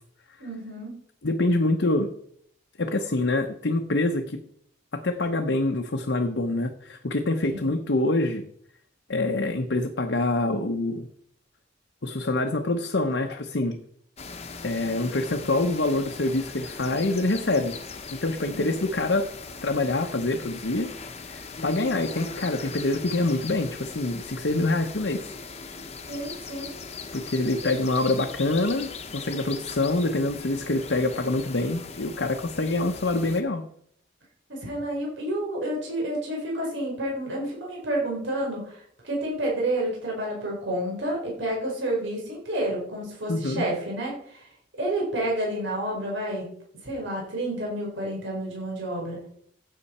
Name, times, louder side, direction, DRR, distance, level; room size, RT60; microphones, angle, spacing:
voice 1, 0.4-1.0 7.5-7.7 18.5-18.7 26.1-26.7 27.6-27.7 34.5-44.5 44.8-46.5 46.8-49.2, right 1 dB, 85° right, -2 dB, 4.2 m, -30 dB
voice 2, 1.2-2.1 2.8-4.4 4.9-8.4 9.1-11.1 12.0-13.8 14.6-17.8 18.2-19.3 19.6-20.9 21.3-25.3 27.1-33.6 43.3-43.6, left 2 dB, 70° left, 3 dB, 0.9 m, -25 dB
sound 1, 14.2-33.4, left 4 dB, 35° left, 1.0 m, -40 dB
15.0 x 7.7 x 4.3 m, 0.66 s
head